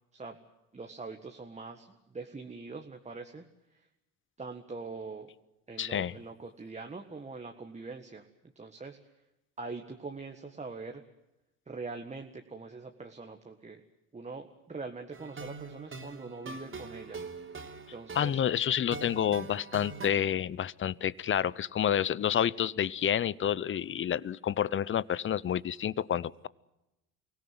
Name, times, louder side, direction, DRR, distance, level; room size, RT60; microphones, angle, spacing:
voice 1, 0.7-3.5 4.4-5.3 5.7-8.3 8.6-9.0 9.6-11.0 11.7-13.8 14.1-17.2 17.9-18.4, right 3 dB, 20° right, 3 dB, 1.8 m, -43 dB
voice 2, 5.8-6.1 18.1-26.5, left 9 dB, 35° left, 21 dB, 0.8 m, -29 dB
sound 1, 15.1-20.1, right 4 dB, 35° right, 3.3 m, -43 dB
24.0 x 17.5 x 9.5 m, 0.92 s
supercardioid pair, 80°, 37 cm